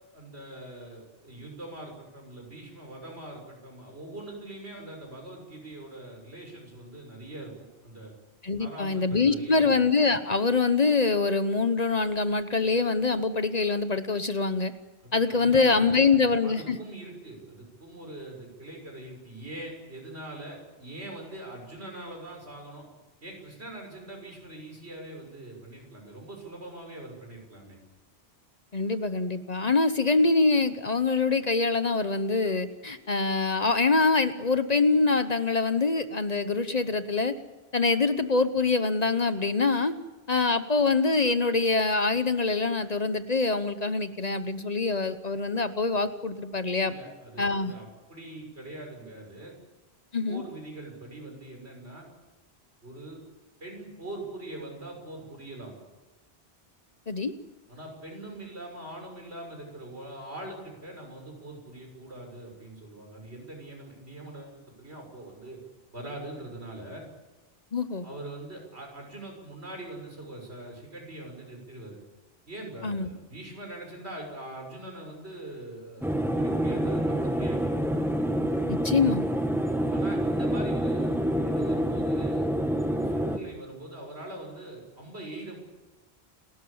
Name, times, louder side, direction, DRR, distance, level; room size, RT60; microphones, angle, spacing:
voice 1, 0.1-8.1 8.6-9.6 15.0-22.8 23.2-27.8 46.9-49.6 50.3-52.1 52.8-53.2 53.6-55.7 57.7-65.6 65.9-67.1 68.0-72.0 72.5-77.9 79.9-82.5 82.8-85.6, right 1 dB, 80° right, 1 dB, 6.8 m, -42 dB
voice 2, 8.4-14.7 15.1-16.8 28.7-37.3 37.7-39.9 40.3-46.9 47.4-47.7 50.1-50.4 57.1-57.3 67.7-68.1 72.8-73.1 78.7-79.3, left 4 dB, 40° left, 11 dB, 1.0 m, -24 dB
sound 1, 76.0-83.4, equal, ahead, 1.4 m, -27 dB
30.0 x 13.5 x 8.7 m, 1.2 s
omnidirectional pair, 1.1 m